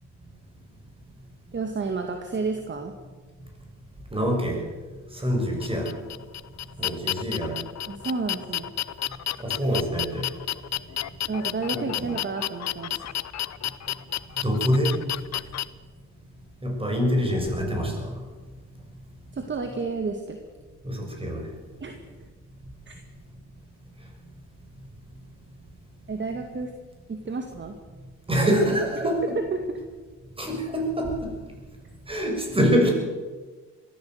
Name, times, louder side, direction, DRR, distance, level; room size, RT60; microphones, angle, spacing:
voice 1, 1.5-2.9 7.9-8.7 11.3-13.0 15.3-15.4 19.3-20.4 21.8-21.9 22.2-22.3 22.9-23.0 26.1-26.7 27.1-27.8 29.0-29.1 29.5-29.8, right 4 dB, 40° right, 5 dB, 2.2 m, -31 dB
voice 2, 4.1-4.6 5.1-5.9 6.8-7.5 9.4-10.3 11.7-12.1 14.4-15.0 16.6-18.1 20.8-21.4 28.3-29.2 30.4-31.1 32.1-32.9, equal, 20° right, 1 dB, 7.0 m, -25 dB
sound 1, 5.6-15.6, left 12 dB, 60° left, 0.9 m, -31 dB
21.5 x 15.0 x 8.1 m, 1.4 s
cardioid pair, 90°, 30 cm